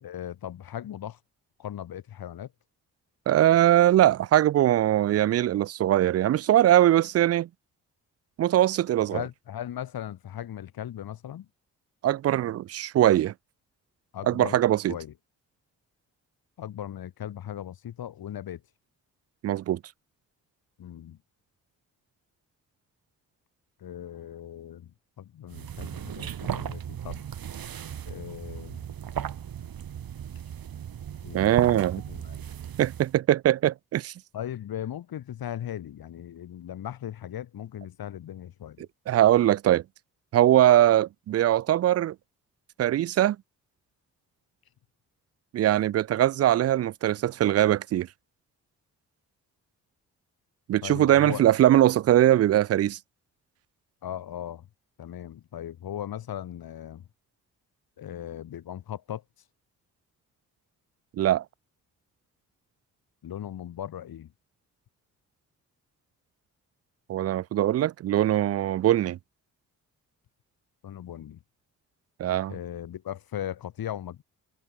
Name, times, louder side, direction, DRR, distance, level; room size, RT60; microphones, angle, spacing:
voice 1, 0.0-1.2 1.6-2.5 9.1-11.5 14.1-14.6 14.9-15.1 16.6-18.6 20.8-21.2 23.8-24.9 25.2-27.2 28.1-28.8 31.2-32.5 34.3-38.9 50.8-51.5 54.0-54.7 55.0-57.1 58.0-59.2 63.2-64.3 70.8-71.4 72.5-74.2, left 10 dB, 65° left, 2.3 m, -38 dB
voice 2, 3.3-7.5 8.4-9.2 12.0-13.3 14.3-15.0 19.4-19.8 31.3-32.0 32.8-34.1 39.1-39.8 40.3-42.1 42.8-43.4 45.5-48.1 50.7-53.0 61.2-61.4 67.1-69.2 72.2-72.5, right 12 dB, 40° right, 0.4 m, -21 dB
sound 1, 25.5-33.2, right 9 dB, 65° right, 3.3 m, -36 dB
hypercardioid pair, 45°, 38 cm